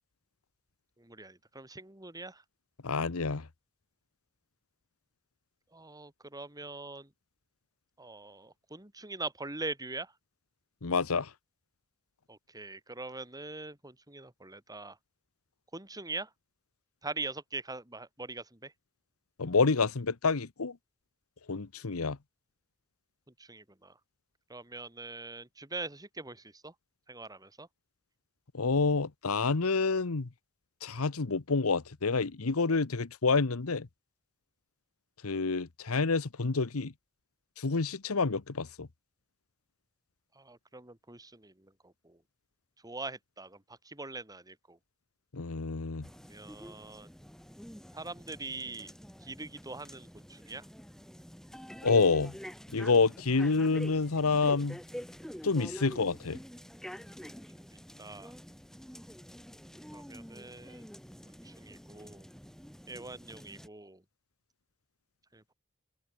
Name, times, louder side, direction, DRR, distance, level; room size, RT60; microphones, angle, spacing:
voice 1, 1.0-2.4 5.7-7.1 8.0-10.1 12.3-15.0 15.7-16.3 17.0-18.7 23.4-24.0 24.5-26.7 27.1-27.7 40.3-42.2 42.8-44.8 46.3-47.1 47.9-48.9 49.2-50.7 57.6-57.7 58.0-58.3 59.9-60.9 61.3-62.3 62.9-64.0 65.3-65.5, right 3 dB, 15° right, 3.2 m, -43 dB
voice 2, 2.8-3.5 10.8-11.3 19.4-20.8 21.5-22.2 28.5-30.3 30.8-33.9 35.2-36.9 37.6-38.9 45.3-46.0 51.8-52.4 52.7-54.8 55.4-56.4, left 4 dB, 75° left, 1.0 m, -28 dB
sound 1, 46.0-63.7, equal, ahead, 2.1 m, -47 dB
open air
head